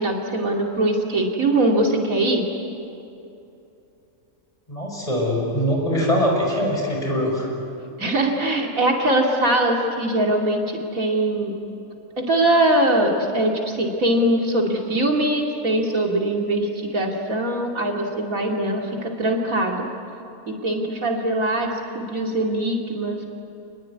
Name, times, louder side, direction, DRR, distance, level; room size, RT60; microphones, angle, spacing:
voice 1, 0.0-2.4 8.0-11.5 12.2-19.9 20.5-23.3, right 1 dB, 65° right, 0 dB, 3.1 m, -22 dB
voice 2, 4.7-7.5, equal, 25° left, -1 dB, 6.2 m, -22 dB
28.0 x 20.5 x 9.7 m, 2.7 s
omnidirectional pair, 1.5 m